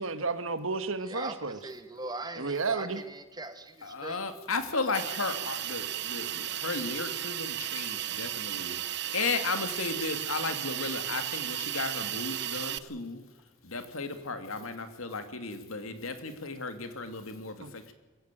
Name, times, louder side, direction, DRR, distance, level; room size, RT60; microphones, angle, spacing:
voice 1, 0.0-1.6 2.4-3.0 17.6-17.7, right 4 dB, 75° right, 1.7 m, -32 dB
voice 2, 1.1-4.2, right 2 dB, 20° right, 1.6 m, -40 dB
voice 3, 3.8-13.2 13.6-17.9, left 3 dB, 85° left, 2.6 m, -35 dB
Hiss, 4.9-12.8, right 12 dB, 55° right, 0.8 m, -34 dB
23.0 x 15.5 x 9.1 m
head